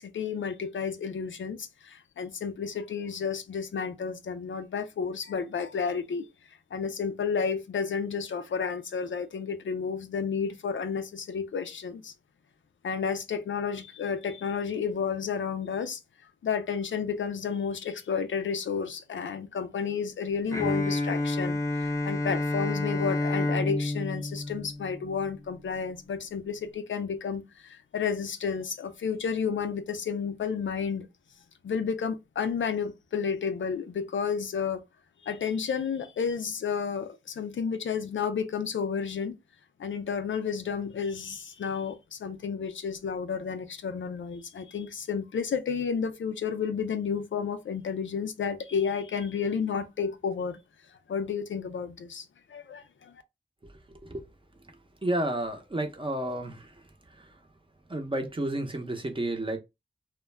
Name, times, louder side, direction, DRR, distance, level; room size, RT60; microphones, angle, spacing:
voice 1, 0.0-6.3 6.7-12.1 12.8-16.0 16.4-31.1 31.6-34.8 35.2-39.4 39.8-50.6 51.1-53.1, left 6 dB, 80° left, 0.4 m, -31 dB
Bowed string instrument, 20.5-25.4, left 2 dB, 15° left, 0.5 m, -29 dB
voice 2, 55.0-56.7 57.9-59.6, right 1 dB, 25° right, 0.6 m, -31 dB
2.2 x 2.1 x 3.2 m
wide cardioid pair, 75°, 20 cm